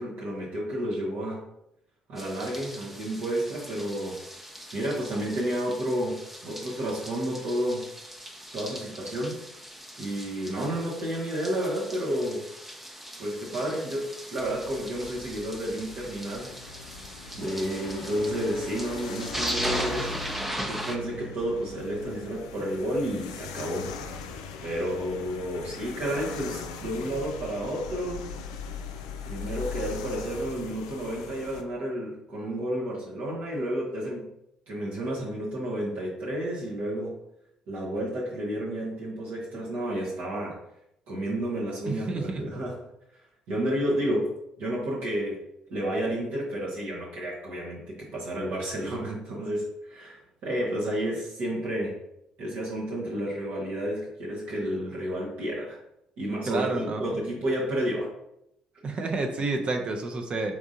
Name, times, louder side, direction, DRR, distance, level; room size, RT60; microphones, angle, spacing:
voice 1, 0.0-1.4 2.1-4.2 4.7-7.8 8.5-9.4 10.0-12.4 13.2-16.8 17.3-20.2 20.6-23.9 24.6-28.3 29.2-34.3 34.7-37.2 37.7-40.6 41.1-42.8 43.5-44.3 44.6-45.4 45.7-52.0 52.4-55.8 56.2-58.1 58.9-59.0, right 1 dB, 60° right, -4 dB, 1.1 m, -31 dB
sound 1, 2.2-21.0, equal, 5° right, 0.7 m, -39 dB
sound 2, 14.4-31.6, left 5 dB, 80° left, 0.4 m, -40 dB
sound 3, 17.4-22.7, left 1 dB, 30° left, 1.1 m, -44 dB
voice 2, 41.9-42.4 56.5-57.0 58.8-60.6, right 3 dB, 40° right, 4 dB, 0.7 m, -29 dB
4.6 x 3.5 x 2.7 m, 0.79 s
hypercardioid pair, 50°, 3 cm